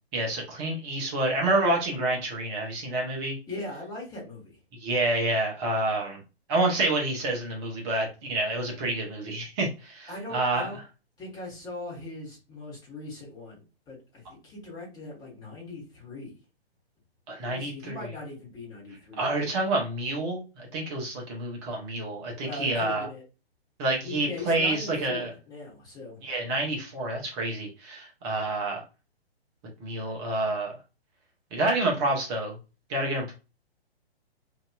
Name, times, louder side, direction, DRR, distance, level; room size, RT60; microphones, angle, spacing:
voice 1, 0.1-3.4 4.8-6.2 6.5-10.7 17.3-18.0 19.2-23.1 23.8-25.3 26.2-28.8 29.8-30.7 31.5-32.5 32.9-33.3, right 2 dB, 25° right, -1 dB, 1.0 m, -28 dB
voice 2, 3.5-4.5 10.1-10.8 11.2-16.4 17.4-19.3 22.4-23.2 24.0-26.2, left 2 dB, 10° left, -5 dB, 1.4 m, -40 dB
2.9 x 2.7 x 2.3 m, 0.29 s
figure-of-eight pair, 125°, 32 cm